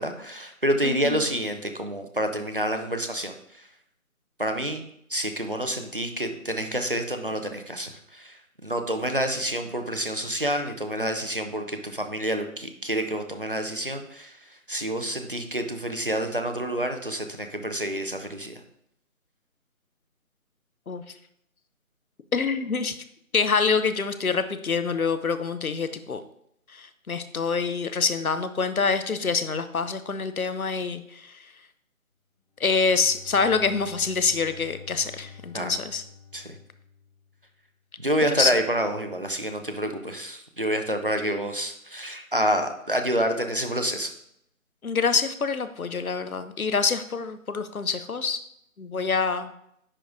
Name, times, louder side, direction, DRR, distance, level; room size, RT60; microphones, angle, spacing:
voice 1, 0.0-3.7 4.4-4.8 5.1-18.5 35.5-35.7 36.3-36.6 38.0-44.1, right 1 dB, 40° right, 6 dB, 0.6 m, -28 dB
voice 2, 0.8-1.2 20.9-21.0 22.3-23.0 23.3-26.2 26.7-31.3 32.6-36.0 38.4-38.5 44.8-48.4 48.8-49.5, left 5 dB, 85° left, 11 dB, 0.8 m, -26 dB
Bowed string instrument, 32.5-37.5, left 6 dB, 20° left, 2.6 m, -48 dB
9.9 x 4.7 x 2.6 m, 0.74 s
figure-of-eight pair, 160°, 42 cm